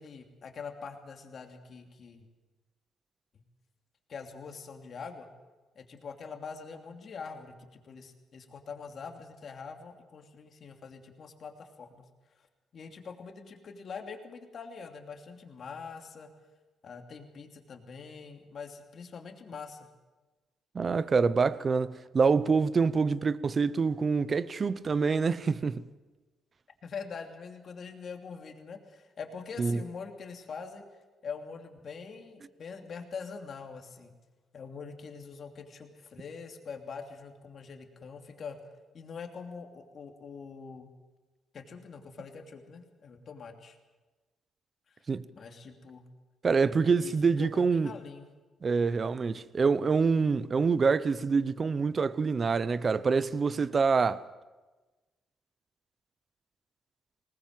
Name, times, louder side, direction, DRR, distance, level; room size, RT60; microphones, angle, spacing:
voice 1, 0.0-2.2 3.3-3.4 4.1-5.3 5.7-12.0 12.7-16.3 16.8-19.9 26.8-30.8 31.2-34.2 34.5-38.6 38.9-40.9 41.5-43.8 44.9-45.0 45.3-46.0 46.8-48.3, left 5 dB, 50° left, 2.9 m, -44 dB
voice 2, 20.7-25.8 29.6-29.8 45.1-45.2 46.4-47.9 48.6-54.2, right 5 dB, 40° right, 0.8 m, -26 dB
19.5 x 19.5 x 7.7 m
cardioid pair, 90°, 0 cm